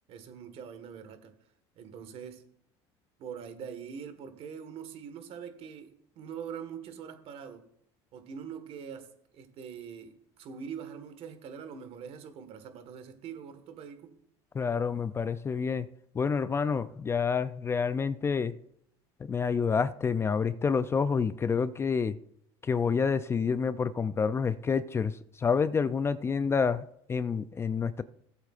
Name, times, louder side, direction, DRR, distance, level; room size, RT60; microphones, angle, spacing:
voice 1, 0.1-1.3 1.7-2.4 3.2-7.6 8.1-14.1, right 7 dB, 55° right, 1.6 m, -43 dB
voice 2, 14.5-15.9 16.1-18.5 19.2-22.2 22.6-28.0, left 5 dB, 20° left, 0.4 m, -28 dB
17.5 x 8.1 x 2.5 m
supercardioid pair, 120°, 12 cm